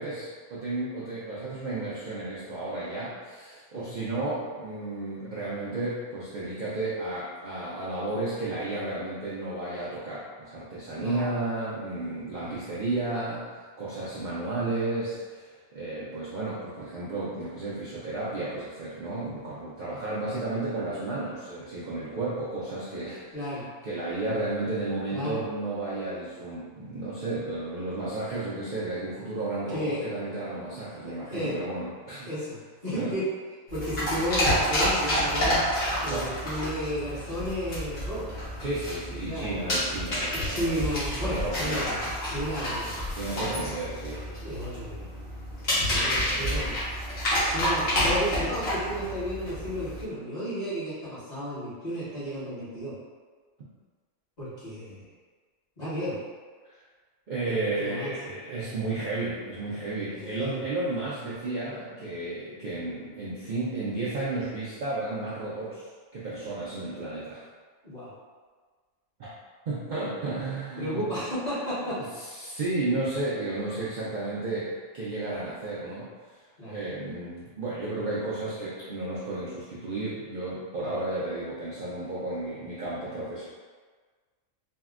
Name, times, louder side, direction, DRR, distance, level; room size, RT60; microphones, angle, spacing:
voice 1, 0.0-32.3 33.0-33.2 36.1-36.4 38.6-41.9 43.1-44.3 45.7-46.8 56.6-56.8 57.3-65.9 66.1-67.4 69.2-69.3 69.7-71.0 71.9-83.5, right 2 dB, 75° right, -9 dB, 0.4 m, -33 dB
voice 2, 11.0-11.3 12.2-12.6 23.3-23.7 25.1-25.4 29.7-30.0 31.0-31.5 32.2-33.2 33.7-35.6 36.0-38.3 39.3-39.7 40.3-43.0 44.4-45.1 45.8-46.9 47.5-52.9 54.4-55.1 55.8-56.2 57.5-58.3 60.1-60.6 67.8-68.1 70.8-72.0 76.6-76.7 80.8-80.9, equal, 30° left, -13 dB, 1.3 m, -33 dB
sound 1, 33.7-50.0, equal, 50° left, 1.1 m, -29 dB
3.6 x 2.1 x 2.4 m, 1.5 s
omnidirectional pair, 1.4 m